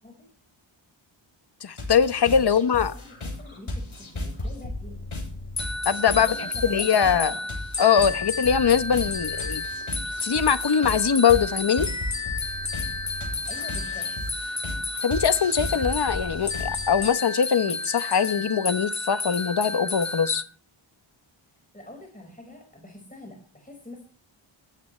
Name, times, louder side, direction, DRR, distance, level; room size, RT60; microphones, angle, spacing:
voice 1, 1.6-2.9 5.8-6.3 6.7-7.3 7.8-9.6 10.2-11.9 15.0-20.4, left 7 dB, 50° left, 1.0 m, -22 dB
sound 1, 1.8-17.0, left 2 dB, 70° left, 7.9 m, -35 dB
voice 2, 2.4-5.0 6.2-7.5 13.4-14.1 21.7-24.0, left 1 dB, 15° left, 5.1 m, -44 dB
sound 2, 5.6-20.4, left 3 dB, 35° left, 1.5 m, -32 dB
21.5 x 14.5 x 3.2 m
wide cardioid pair, 90°, 49 cm